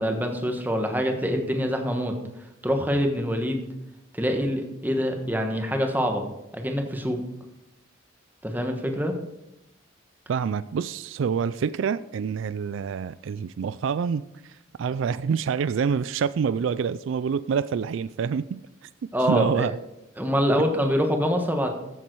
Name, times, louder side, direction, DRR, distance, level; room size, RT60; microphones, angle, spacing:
voice 1, 0.0-2.2 2.6-3.6 4.1-6.3 6.5-7.2 8.4-9.2 19.1-19.7 20.2-21.7, equal, 10° right, 1.2 m, -25 dB
voice 2, 10.3-19.7, right 6 dB, 70° right, 0.3 m, -27 dB
14.0 x 7.3 x 4.6 m
head